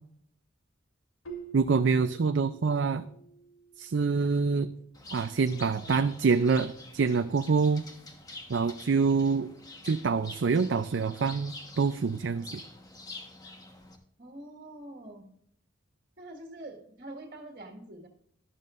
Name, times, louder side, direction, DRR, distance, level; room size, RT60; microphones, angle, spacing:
Keyboard (musical), 1.2-4.0, right 5 dB, 90° left, 1.5 m, -47 dB
voice 1, 1.5-3.0 3.8-4.7 5.1-7.8 8.5-9.5 9.8-12.6, right 5 dB, 60° right, 9 dB, 0.4 m, -26 dB
Bird, 4.9-14.0, left 2 dB, 20° left, 1.2 m, -47 dB
voice 2, 14.2-15.3 16.2-18.1, right 1 dB, 45° right, 2 dB, 1.8 m, -45 dB
12.5 x 12.0 x 2.5 m, 0.69 s
head